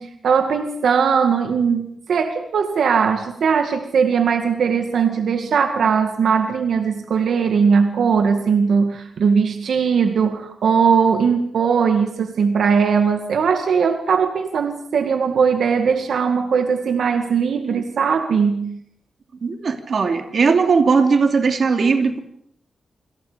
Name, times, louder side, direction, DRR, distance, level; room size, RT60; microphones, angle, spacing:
voice 1, 0.0-18.8, right 6 dB, 75° right, 5 dB, 2.1 m, -19 dB
voice 2, 19.4-22.2, right 5 dB, 55° right, 4 dB, 3.1 m, -18 dB
28.5 x 26.5 x 5.2 m, 0.67 s
wide cardioid pair, 140°, 0 cm